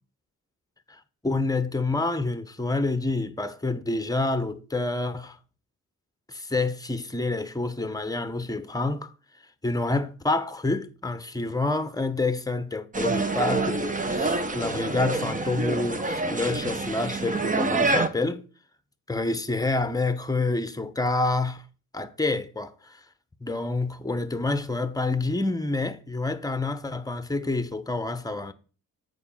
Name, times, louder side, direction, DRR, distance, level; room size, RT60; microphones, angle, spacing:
voice 1, 0.9-5.4 6.3-9.1 9.6-18.4 19.1-21.6 21.9-23.0 23.4-28.5, left 2 dB, 10° left, 1.0 m, -28 dB
sound 1, 12.9-18.1, right 3 dB, 20° right, 1.0 m, -27 dB
8.2 x 4.6 x 5.6 m
cardioid pair, 70°, 35 cm